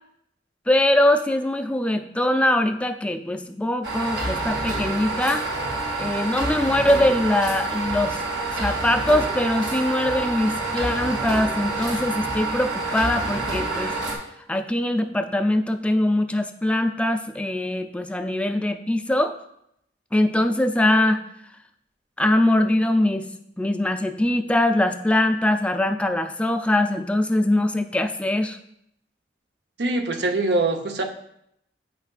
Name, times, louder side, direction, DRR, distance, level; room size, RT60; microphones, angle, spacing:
voice 1, 0.7-5.5 6.0-8.2 8.5-13.9 14.5-19.4 20.1-21.2 22.2-23.3 23.6-28.6, left 1 dB, 5° left, 6 dB, 0.3 m, -22 dB
sound 1, 3.8-14.2, right 2 dB, 90° right, 1.8 m, -27 dB
voice 2, 29.8-31.0, right 2 dB, 65° right, 4 dB, 0.7 m, -23 dB
8.4 x 5.6 x 2.4 m, 0.76 s
head